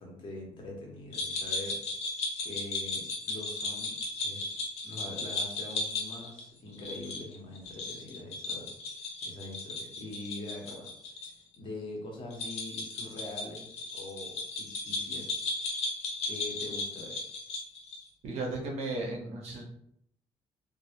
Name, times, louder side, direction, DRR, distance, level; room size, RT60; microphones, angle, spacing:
voice 1, 0.0-1.8 2.4-4.0 4.2-4.5 4.8-8.8 9.2-10.9 11.6-15.3 16.3-17.2, left 2 dB, 50° left, -1 dB, 0.8 m, -43 dB
sound 1, 1.1-11.3 11.5-11.6 12.3-18.1, left 3 dB, 80° left, 0.6 m, -36 dB
voice 2, 18.2-19.6, right 2 dB, 85° right, -1 dB, 0.7 m, -35 dB
2.1 x 2.0 x 2.8 m, 0.71 s
cardioid pair, 125°, 11 cm